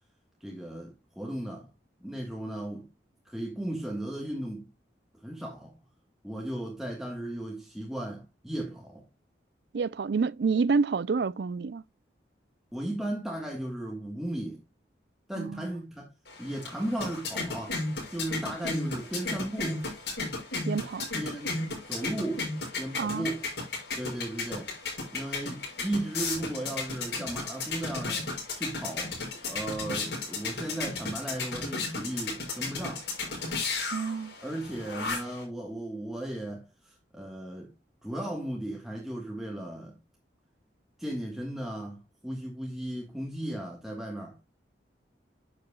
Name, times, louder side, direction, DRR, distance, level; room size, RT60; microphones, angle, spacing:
voice 1, 0.4-1.7 2.0-2.9 3.3-4.7 5.1-5.7 6.2-9.1 12.7-14.6 15.3-16.1 16.4-19.8 21.2-21.6 21.9-22.5 22.8-23.5 24.0-24.7 25.1-28.3 28.6-29.2 29.5-33.1 34.4-37.7 38.0-40.0 41.0-44.4, right 1 dB, ahead, 1.6 m, -36 dB
voice 2, 9.7-11.8 15.4-15.6 20.6-21.1 22.9-23.3 33.9-34.3, right 5 dB, 65° right, 0.4 m, -28 dB
sound 1, 16.3-35.4, left 3 dB, 70° left, 6.0 m, -35 dB
10.5 x 7.7 x 2.2 m
head